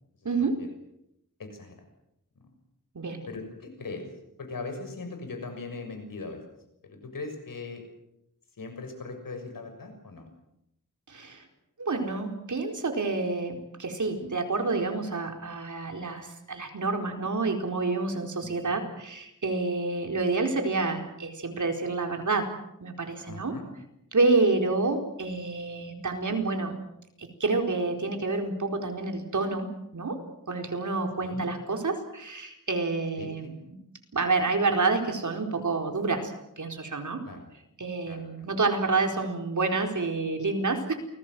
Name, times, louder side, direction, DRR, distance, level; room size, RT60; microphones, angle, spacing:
voice 1, 0.2-0.6 2.9-3.2 11.1-11.4 11.8-23.6 24.1-26.8 27.2-30.2 30.5-33.8 34.1-37.2 37.8-40.9, right 3 dB, 65° right, 4 dB, 4.5 m, -28 dB
voice 2, 1.4-1.8 3.3-4.1 4.4-6.4 6.8-7.8 8.6-10.2 18.4-18.8 23.2-23.7 31.2-31.4 33.2-33.5 37.2-37.5 38.1-38.5, left 3 dB, 90° left, 6 dB, 6.6 m, -40 dB
28.5 x 20.0 x 7.8 m, 0.81 s
wide cardioid pair, 80°, 33 cm